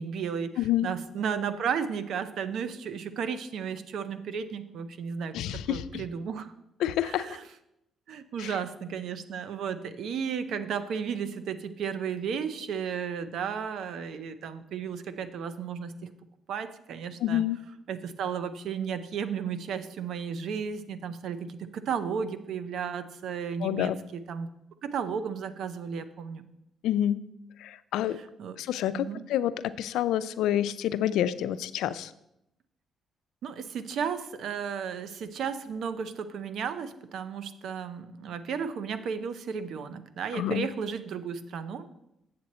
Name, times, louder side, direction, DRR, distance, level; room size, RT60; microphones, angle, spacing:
voice 1, 0.0-6.5 7.0-7.4 8.1-15.9 16.5-17.4 17.9-24.5 24.8-26.5 28.1-28.6 28.9-29.2 33.4-41.9, right 7 dB, 70° right, 12 dB, 0.6 m, -34 dB
voice 2, 0.6-0.9 5.3-6.0 6.8-7.3 8.4-8.5 17.2-17.6 23.6-24.0 26.8-27.2 27.6-28.2 28.6-32.1 40.3-40.6, left 11 dB, 90° left, 15 dB, 0.4 m, -28 dB
7.7 x 7.6 x 4.2 m, 0.84 s
cardioid pair, 90°, 0 cm